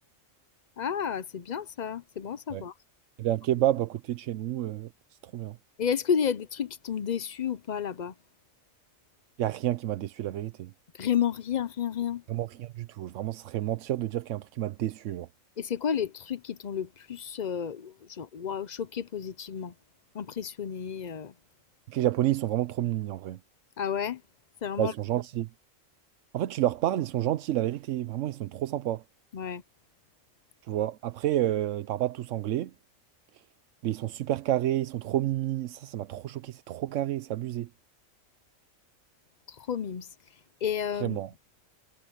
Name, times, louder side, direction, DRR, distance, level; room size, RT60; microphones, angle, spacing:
voice 1, 0.8-2.7 5.8-8.1 11.0-12.2 15.6-19.7 20.1-21.3 23.8-24.2 24.6-24.9 29.3-29.6 39.6-40.1 40.6-41.2, left 8 dB, 50° left, 0.5 m, -31 dB
voice 2, 3.2-4.9 5.3-5.6 9.4-10.7 12.3-15.3 21.9-23.4 24.8-25.5 26.3-29.0 30.7-32.7 33.8-37.7 41.0-41.3, right 13 dB, 70° right, 0.9 m, -29 dB
omnidirectional pair, 1.4 m